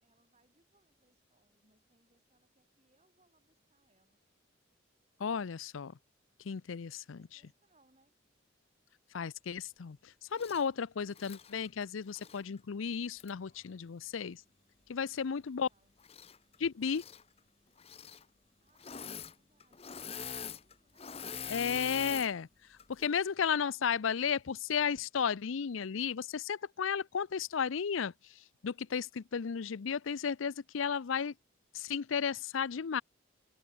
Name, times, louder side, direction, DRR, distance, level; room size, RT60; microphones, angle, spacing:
voice 1, 0.0-4.2 6.7-8.2 15.1-15.9 18.6-21.2 23.1-23.5, right 2 dB, 30° right, 6.9 m, -73 dB
voice 2, 5.2-5.9 6.4-7.2 9.1-14.4 14.9-15.7 16.6-17.0 21.5-22.5 22.9-28.1 28.6-31.3 31.7-33.0, left 6 dB, 85° left, 0.5 m, -34 dB
Engine / Mechanisms, 10.3-10.7 11.1-12.4 13.2-13.3 16.0-16.6 16.8-17.2 17.8-18.2 18.8-19.3 19.6-22.3 22.8-23.1, left 7 dB, 30° left, 0.8 m, -44 dB
head